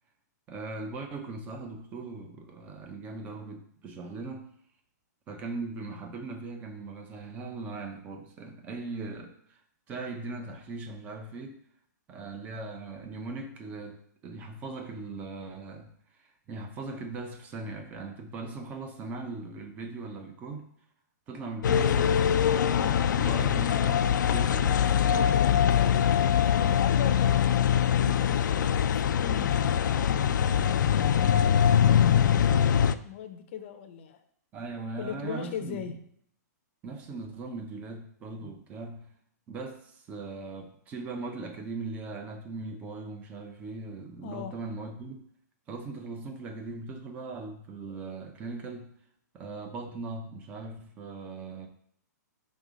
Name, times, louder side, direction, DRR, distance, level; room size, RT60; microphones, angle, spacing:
voice 1, 0.5-4.5 5.3-9.6 9.9-11.6 12.1-15.9 16.5-20.7 21.3-24.8 34.5-35.9 36.8-39.1 39.5-45.2 45.7-48.9 49.3-51.7, right 3 dB, 15° right, 5 dB, 0.6 m, -39 dB
sound 1, 21.6-33.0, left 8 dB, 90° left, 0.4 m, -23 dB
voice 2, 25.1-26.1 26.5-27.5 28.0-29.6 30.1-31.0 31.6-34.2 35.0-36.0 44.2-44.5, left 8 dB, 35° left, 7 dB, 0.6 m, -39 dB
5.4 x 3.6 x 5.0 m, 0.65 s
hypercardioid pair, 170°, 10 cm